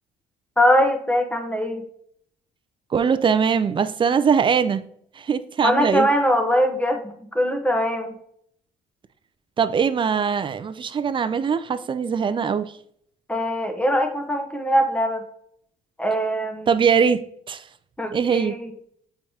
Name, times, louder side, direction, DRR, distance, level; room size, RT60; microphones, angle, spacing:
voice 1, 0.6-1.8 5.6-8.1 13.3-15.2 16.0-16.7 18.0-18.7, equal, 10° left, 1.0 m, -22 dB
voice 2, 2.9-4.8 5.2-6.1 9.6-12.7 16.7-17.2 17.5-17.7 18.1-18.6, right 6 dB, 30° right, 0.5 m, -21 dB
7.6 x 4.8 x 2.8 m
cardioid pair, 110°, 17 cm